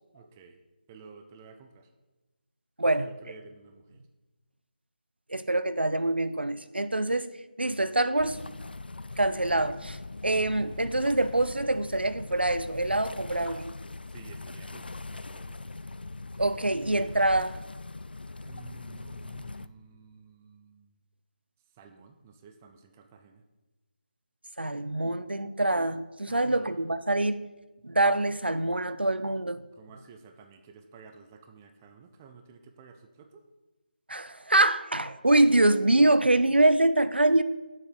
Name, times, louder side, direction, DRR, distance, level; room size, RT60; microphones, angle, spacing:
voice 1, 0.1-0.6 0.9-1.9 2.8-4.0 14.1-15.5 18.4-20.9 21.8-23.4 26.3-26.8 29.7-33.4, right 5 dB, 15° right, 0.4 m, -52 dB
voice 2, 2.8-3.1 5.3-7.3 7.6-8.4 9.2-10.0 10.2-13.7 16.4-17.6 24.6-27.5 27.8-29.6 34.1-37.4, right 2 dB, 85° right, 0.6 m, -25 dB
sound 1, 8.2-19.7, left 3 dB, 70° left, 0.4 m, -41 dB
7.2 x 6.5 x 6.5 m
figure-of-eight pair, 160°, 5 cm